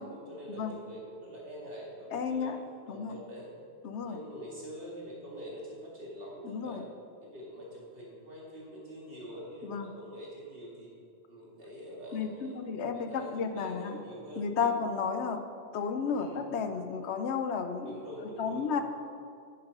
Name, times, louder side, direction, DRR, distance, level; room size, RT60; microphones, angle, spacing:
voice 1, 0.0-2.5 2.9-3.5 4.0-6.9 7.2-10.9 11.3-14.7 16.1-16.4 17.8-18.8, equal, 55° right, -5 dB, 2.5 m, -45 dB
voice 2, 2.1-2.6 2.9-3.1 3.8-4.2 6.4-6.8 9.6-9.9 12.1-14.0 14.4-15.4 15.7-18.0 18.4-18.8, left 6 dB, 75° left, 8 dB, 1.0 m, -32 dB
9.8 x 6.8 x 5.4 m, 2.3 s
omnidirectional pair, 1.2 m